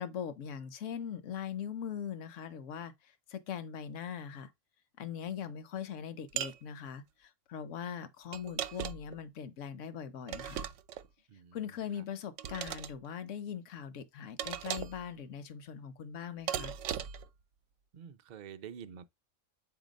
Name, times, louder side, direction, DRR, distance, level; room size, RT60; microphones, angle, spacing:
voice 1, 0.0-4.5 5.0-10.7 11.5-16.8, left 8 dB, 70° left, 1.1 m, -41 dB
sound 1, 6.4-6.6 8.3-9.2 10.3-11.1 12.4-12.9 14.4-15.0 16.5-17.3, right 10 dB, 75° right, 0.9 m, -37 dB
voice 2, 11.3-12.0 17.9-19.0, right 8 dB, 50° right, 0.5 m, -48 dB
7.9 x 2.8 x 5.1 m
omnidirectional pair, 1.4 m